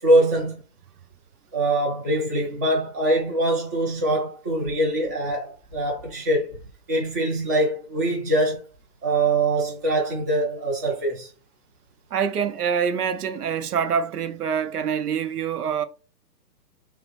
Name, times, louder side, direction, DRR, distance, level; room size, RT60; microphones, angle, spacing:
voice 1, 0.0-0.6 1.5-6.6 6.9-8.6 9.0-11.3, right 1 dB, 10° right, 0.5 m, -23 dB
voice 2, 12.1-15.8, right 7 dB, 65° right, 0.7 m, -25 dB
5.8 x 2.2 x 3.1 m
hypercardioid pair, 150°, 49 cm